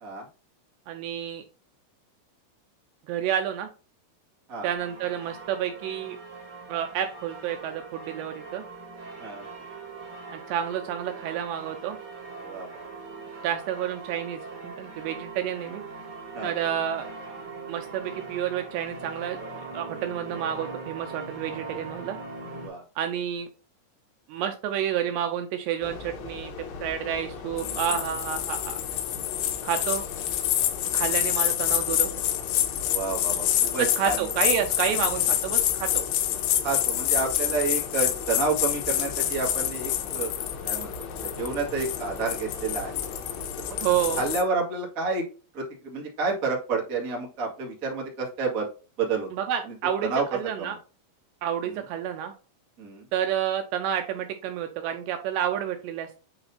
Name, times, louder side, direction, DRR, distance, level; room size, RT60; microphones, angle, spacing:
voice 1, 0.9-1.4 3.1-3.7 4.6-6.2 6.7-8.6 10.3-12.0 13.4-15.8 16.4-17.1 17.7-22.2 23.0-23.5 24.3-26.5 26.8-28.8 29.6-30.0 30.9-32.1 33.8-36.1 43.8-44.3 49.3-50.8 51.4-52.3 53.1-56.2, right 9 dB, 80° right, 6 dB, 2.6 m, -29 dB
sound 1, 4.8-22.7, right 3 dB, 40° right, 2.2 m, -41 dB
voice 2, 12.4-12.9 16.3-16.6 22.6-22.8 27.6-27.9 32.9-34.3 36.6-40.3 40.6-43.0 43.6-43.8 44.1-45.2 45.5-48.7 49.0-49.3 49.7-49.8 50.0-50.2 50.6-50.8 51.6-51.8 52.8-53.0, right 4 dB, 65° right, -3 dB, 0.8 m, -30 dB
sound 2, 25.8-44.4, left 4 dB, 70° left, 2.3 m, -39 dB
sound 3, 27.6-44.4, left 12 dB, 85° left, 3.2 m, -27 dB
8.8 x 4.2 x 2.7 m, 0.36 s
omnidirectional pair, 5.6 m